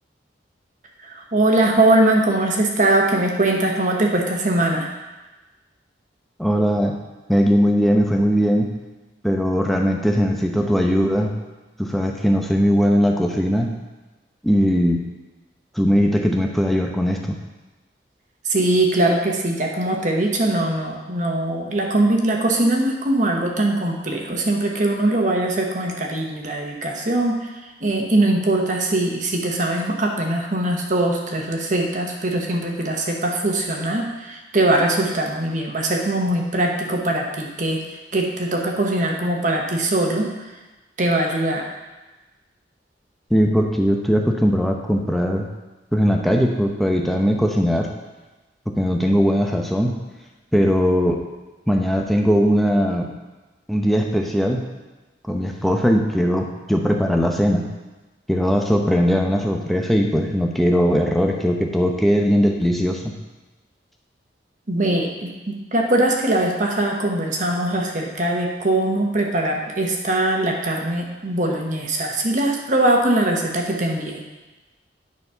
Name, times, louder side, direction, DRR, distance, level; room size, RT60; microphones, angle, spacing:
voice 1, 1.0-4.9 18.4-27.5 27.8-40.5 41.0-41.6 64.7-74.2, right 1 dB, 45° right, 1 dB, 1.2 m, -21 dB
voice 2, 6.4-7.0 7.3-8.7 9.2-11.3 11.8-13.7 14.4-15.0 15.8-17.2 43.3-45.5 45.9-47.9 48.7-50.0 50.5-51.2 51.7-53.1 53.7-54.6 55.3-57.7 58.3-63.1, equal, ahead, 1 dB, 0.8 m, -19 dB
9.6 x 4.2 x 5.6 m, 1.2 s
head